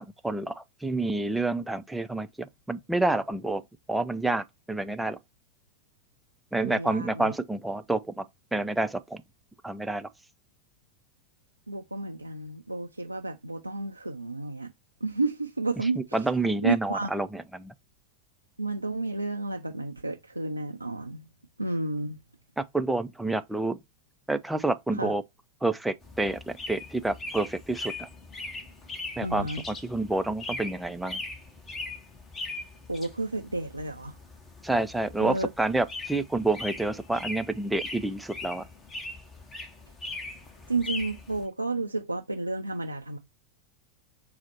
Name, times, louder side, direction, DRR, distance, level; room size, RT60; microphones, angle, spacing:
voice 1, 0.0-3.6 3.9-5.2 6.5-8.2 8.5-9.2 9.6-10.1 15.8-17.7 22.6-23.8 24.3-25.2 25.6-28.1 29.2-31.2 34.6-38.6, right 2 dB, 5° right, 0.4 m, -29 dB
voice 2, 6.6-7.3 11.7-14.7 15.0-16.2 16.6-17.1 18.6-21.3 21.6-22.2 25.0-25.1 29.2-29.6 32.9-34.2 35.2-35.5 40.7-43.2, right 3 dB, 85° right, 0.3 m, -31 dB
sound 1, 26.0-41.5, left 2 dB, 20° left, 0.8 m, -40 dB
4.2 x 2.1 x 4.3 m
figure-of-eight pair, 90°, 0 cm